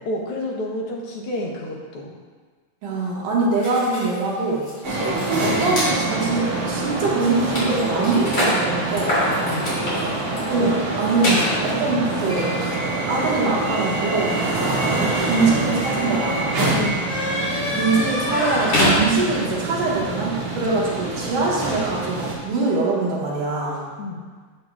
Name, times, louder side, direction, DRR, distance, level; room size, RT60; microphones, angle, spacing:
voice 1, 0.0-2.1 9.0-9.2 9.4-9.7 16.7-17.0 20.6-20.7 24.0-24.2, left 1 dB, 65° left, -1 dB, 1.5 m, -30 dB
voice 2, 2.8-5.0 5.4-9.2 10.5-12.7 13.1-16.6 17.7-23.8, right 3 dB, 85° right, -4 dB, 3.1 m, -23 dB
sound 1, 3.6-5.9 6.7-6.8 7.1-19.5, equal, 40° left, 3.2 m, -27 dB
sound 2, 4.8-22.3, right 2 dB, 65° right, 3.2 m, -25 dB
13.0 x 7.9 x 2.4 m, 1.5 s
omnidirectional pair, 3.6 m